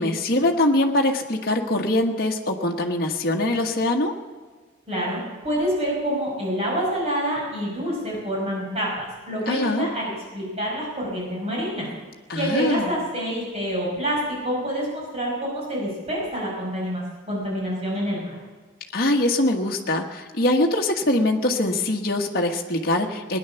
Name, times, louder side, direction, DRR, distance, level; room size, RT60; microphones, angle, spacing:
voice 1, 0.0-4.1 9.5-9.9 12.3-13.0 18.9-23.4, left 1 dB, 45° left, 1 dB, 1.3 m, -23 dB
voice 2, 4.9-5.2 5.4-10.0 10.3-11.9 12.3-17.0 17.3-18.4, equal, 30° right, -4 dB, 5.6 m, -27 dB
19.0 x 10.5 x 7.0 m, 1.4 s
head